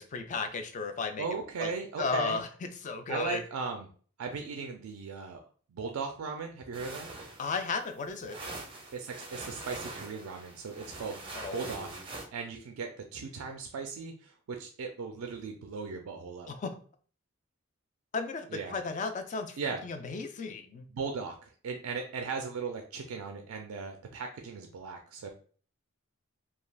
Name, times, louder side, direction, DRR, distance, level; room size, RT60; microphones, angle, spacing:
voice 1, 0.0-1.3 1.6-1.7 2.0-2.5 2.8-3.4 7.4-8.4 11.4-12.0 16.5-16.7 18.1-19.6 19.8-20.9, left 4 dB, 35° left, 7 dB, 0.3 m, -34 dB
voice 2, 1.2-2.4 3.1-3.9 4.2-5.4 5.7-7.1 8.9-11.2 11.5-11.9 12.3-16.5 18.5-18.8 19.6-19.8 20.9-25.3, right 5 dB, 85° right, 4 dB, 0.4 m, -37 dB
sound 1, 6.7-12.2, right 2 dB, 25° right, 0.5 m, -44 dB
3.2 x 2.2 x 2.3 m, 0.43 s
head